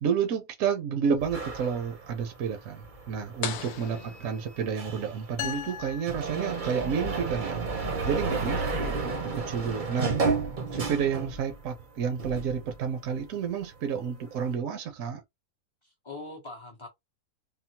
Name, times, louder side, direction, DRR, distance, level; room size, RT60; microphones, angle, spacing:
voice 1, 0.0-10.2 10.7-15.2, right 7 dB, 65° right, 1.0 m, -30 dB
sound 1, 1.2-11.8 12.1-13.4, right 4 dB, 45° right, 0.7 m, -33 dB
sound 2, 3.4-5.1, left 8 dB, 85° left, 1.1 m, -38 dB
sound 3, 5.4-7.2, left 8 dB, 70° left, 0.6 m, -39 dB
voice 2, 8.5-9.2 15.8-16.9, left 2 dB, 25° left, 0.7 m, -43 dB
3.6 x 2.0 x 2.8 m
omnidirectional pair, 1.6 m